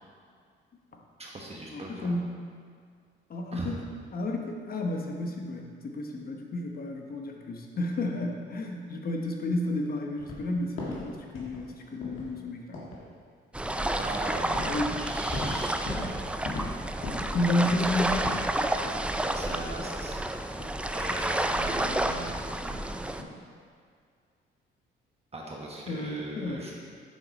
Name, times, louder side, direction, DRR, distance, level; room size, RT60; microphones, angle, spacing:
voice 1, 1.2-2.2 3.5-3.8 14.0-16.3 19.2-20.3 20.9-22.4 25.3-26.7, right 2 dB, 30° right, -3 dB, 1.2 m, -39 dB
voice 2, 1.7-2.3 3.3-3.8 4.1-12.8 14.6-15.0 17.3-18.4 25.9-26.7, left 1 dB, 50° left, 2 dB, 0.9 m, -31 dB
sound 1, 10.2-10.4 10.8-11.1 11.3-11.7 12.0-12.3 12.7-13.0 14.1-14.2 14.6-14.8 15.1-16.2 16.5-16.7 17.0-18.5 18.8-19.0 19.4-19.5 20.6-21.3 21.8-22.0 22.5-22.8 23.1-23.3, left 2 dB, 75° left, 1.7 m, -38 dB
sound 2, 13.5-23.2, right 1 dB, 5° right, 0.3 m, -30 dB
7.3 x 5.8 x 4.0 m, 2.1 s
cardioid pair, 90°, 20 cm